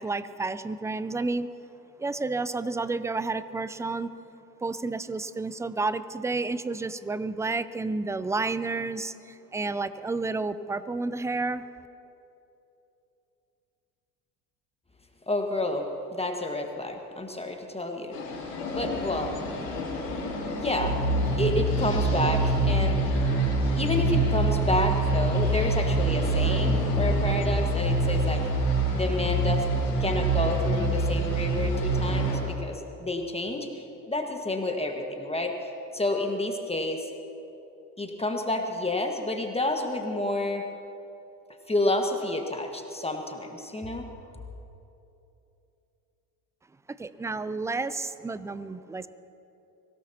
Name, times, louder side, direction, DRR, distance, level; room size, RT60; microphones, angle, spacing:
voice 1, 0.0-1.5 2.0-4.1 4.6-11.6 47.0-49.1, right 3 dB, 5° right, 14 dB, 0.4 m, -30 dB
voice 2, 15.3-18.2 18.7-19.3 20.5-21.0 21.4-23.0 23.8-28.4 28.9-29.6 30.0-35.6 35.9-37.1 38.0-40.6 41.7-44.1, left 2 dB, 10° left, 3 dB, 1.6 m, -29 dB
sound 1, 18.1-32.4, left 3 dB, 85° left, 3.6 m, -35 dB
sound 2, 20.8-32.3, right 2 dB, 60° right, 3.7 m, -25 dB
24.0 x 17.5 x 2.9 m, 2.9 s
hypercardioid pair, 70°, 48 cm